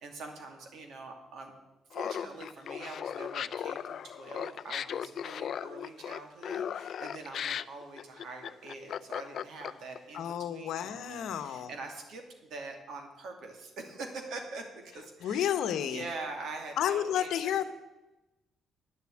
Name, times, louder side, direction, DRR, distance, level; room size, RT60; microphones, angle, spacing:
voice 1, 0.0-1.5 1.9-15.5 15.8-17.6, right 3 dB, 75° right, 3 dB, 2.4 m, -44 dB
Laughter, 1.9-10.0, left 8 dB, 60° left, 0.4 m, -37 dB
voice 2, 10.1-11.7 15.2-16.0 16.8-17.7, left 10 dB, 80° left, 11 dB, 0.9 m, -31 dB
9.7 x 7.1 x 9.0 m, 1.0 s
cardioid pair, 90°, 0 cm